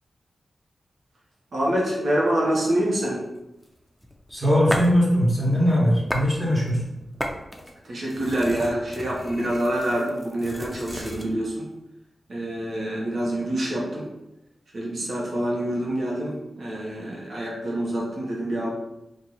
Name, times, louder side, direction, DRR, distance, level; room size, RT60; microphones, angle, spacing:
voice 1, 1.5-3.3 7.9-11.7 12.3-14.1 14.7-18.7, right 1 dB, 70° right, -3 dB, 1.1 m, -26 dB
sound 1, 3.6-5.0 5.4-6.3 6.6-11.3, equal, 5° left, 0.6 m, -35 dB
voice 2, 4.3-6.8, equal, 15° right, -5 dB, 1.3 m, -20 dB
2.8 x 2.6 x 4.0 m, 0.93 s
cardioid pair, 40°, 0 cm